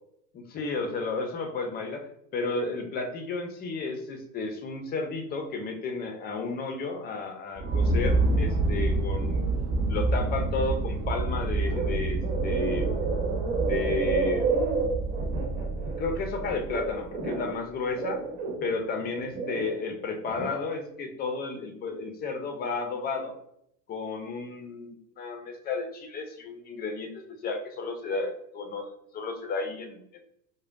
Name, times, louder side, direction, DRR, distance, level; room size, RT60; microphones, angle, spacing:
voice 1, 0.3-9.5 9.9-12.9 13.7-14.5 15.8-23.3 23.9-30.0, left 3 dB, 20° left, 5 dB, 0.4 m, -33 dB
sound 1, 7.6-17.2, right 2 dB, 35° right, 1.0 m, -28 dB
sound 2, 11.6-11.9 12.2-17.5 17.9-19.7 20.1-20.5, right 4 dB, 55° right, 1.3 m, -30 dB
4.7 x 2.2 x 2.4 m, 0.74 s
hypercardioid pair, 85°, 49 cm